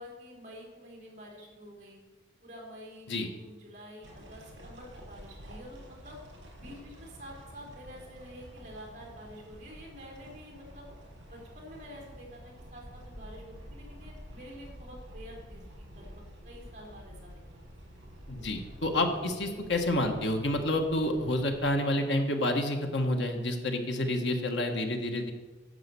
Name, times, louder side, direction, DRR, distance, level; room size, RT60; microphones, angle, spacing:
voice 1, 0.0-2.0 2.4-6.2 6.6-10.9 11.3-16.1 16.4-17.3, equal, 40° right, -2 dB, 3.6 m, -48 dB
sound 1, 4.0-21.7, equal, 70° right, 4.7 m, -49 dB
voice 2, 18.3-25.3, left 1 dB, 65° left, 4 dB, 1.5 m, -29 dB
10.5 x 8.0 x 7.0 m, 1.3 s
head